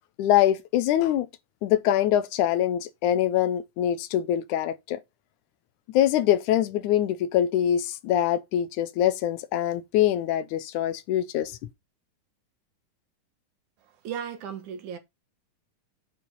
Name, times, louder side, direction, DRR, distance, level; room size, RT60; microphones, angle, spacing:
voice 1, 0.2-1.3 1.6-5.0 5.9-11.6, left 11 dB, 80° left, 2.2 m, -24 dB
voice 2, 14.0-15.0, right 8 dB, 75° right, 2.7 m, -35 dB
8.8 x 4.8 x 5.4 m
omnidirectional pair, 3.6 m